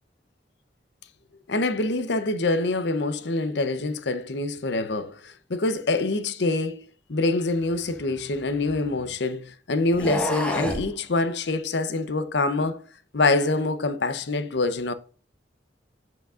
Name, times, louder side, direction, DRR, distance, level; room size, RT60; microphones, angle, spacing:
voice 1, 1.5-12.8 13.1-14.9, left 2 dB, 70° left, 0.7 m, -25 dB
sound 1, 7.6-9.1 9.9-10.9, equal, 5° left, 1.2 m, -30 dB
7.9 x 7.6 x 2.5 m
head